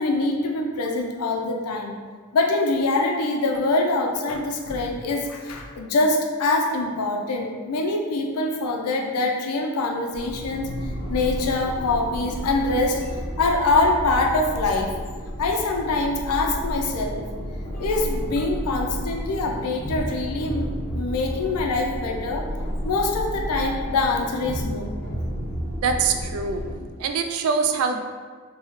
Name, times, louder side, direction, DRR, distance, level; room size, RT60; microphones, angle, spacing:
voice 1, 0.0-2.0 2.3-10.7 11.1-14.9 15.4-17.3 17.8-22.5 22.8-24.9, left 2 dB, 90° left, 2 dB, 0.5 m, -24 dB
sound 1, 10.1-26.8, equal, 50° left, 0.7 m, -31 dB
voice 2, 25.8-26.6 27.0-28.0, right 5 dB, 70° right, 6 dB, 0.3 m, -23 dB
3.1 x 2.2 x 3.4 m, 1.5 s
head